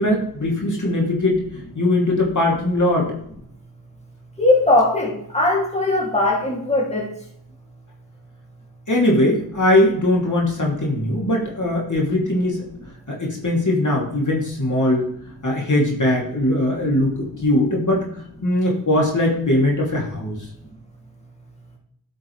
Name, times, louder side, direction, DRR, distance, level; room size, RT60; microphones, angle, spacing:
voice 1, 0.0-1.4 1.7-3.1 8.9-12.6 13.1-15.0 15.4-18.1 18.4-20.4, left 1 dB, 40° left, -2 dB, 2.8 m, -20 dB
voice 2, 4.4-7.1, left 2 dB, 15° left, -1 dB, 2.6 m, -19 dB
10.5 x 6.0 x 3.3 m, 0.68 s
cardioid pair, 40°, 44 cm